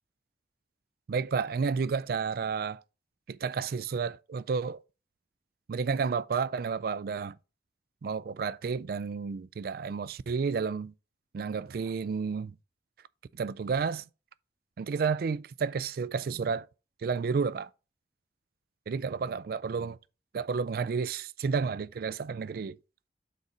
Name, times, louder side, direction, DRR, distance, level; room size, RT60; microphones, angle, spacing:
voice 1, 1.1-2.8 3.3-4.8 5.7-7.4 8.0-10.9 11.3-12.5 13.3-14.1 14.8-16.7 17.0-17.7 18.9-20.0 20.3-22.8, right 5 dB, 55° right, 0.3 m, -31 dB
6.5 x 4.1 x 4.9 m
head